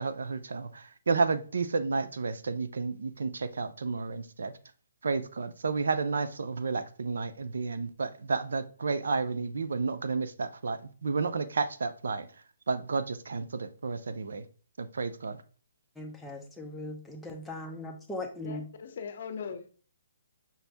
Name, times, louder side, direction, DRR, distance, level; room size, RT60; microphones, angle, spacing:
voice 1, 0.0-4.5 5.0-12.3 12.7-14.5 14.8-15.4, right 4 dB, 80° right, 0.5 m, -31 dB
voice 2, 16.0-18.7, left 1 dB, 5° left, 0.6 m, -39 dB
voice 3, 18.4-19.7, left 6 dB, 55° left, 0.6 m, -39 dB
5.5 x 2.6 x 3.3 m
hypercardioid pair, 155°, 0 cm